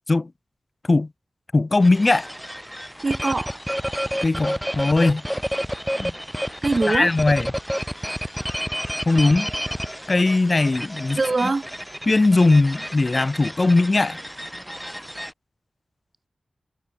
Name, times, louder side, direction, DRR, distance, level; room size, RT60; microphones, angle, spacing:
voice 1, 1.5-2.3 4.2-5.2 6.0-6.1 6.9-7.5 9.1-9.5 10.1-11.5 12.1-14.2, left 2 dB, 35° left, 4.1 m, -19 dB
sound 1, 1.8-15.3, equal, ahead, 6.0 m, -30 dB
voice 2, 3.0-3.6 6.6-7.1 11.2-11.6, right 3 dB, 40° right, 1.1 m, -22 dB
wide cardioid pair, 95°, 0 cm